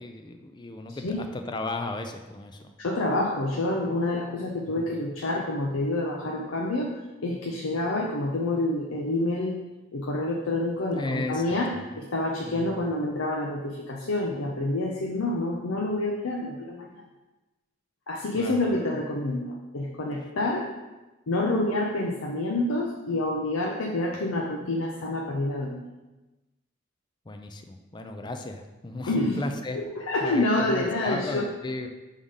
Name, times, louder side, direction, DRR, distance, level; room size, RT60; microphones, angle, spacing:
voice 1, 0.0-2.7 4.7-4.9 10.9-11.8 12.4-12.8 18.3-18.7 27.3-29.8 30.2-31.9, left 2 dB, 20° left, 6 dB, 0.4 m, -35 dB
voice 2, 0.9-1.2 2.8-6.9 7.2-9.6 9.9-16.9 18.1-20.7 21.3-25.9 29.1-29.4 29.7-31.5, left 2 dB, 90° left, 0 dB, 0.7 m, -28 dB
4.9 x 3.7 x 5.5 m, 1.1 s
head